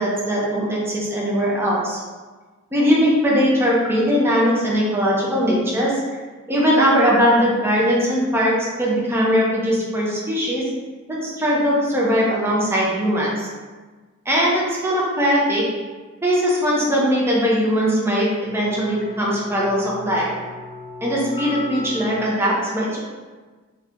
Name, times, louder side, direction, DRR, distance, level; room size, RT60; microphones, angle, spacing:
voice 1, 0.0-2.0 2.7-6.0 6.5-10.7 11.2-13.5 14.3-15.7 16.2-20.3 21.0-23.0, equal, 10° right, -5 dB, 0.6 m, -20 dB
sound 1, 18.4-22.1, left 3 dB, 30° left, 0.7 m, -36 dB
2.7 x 2.6 x 3.4 m, 1.3 s
head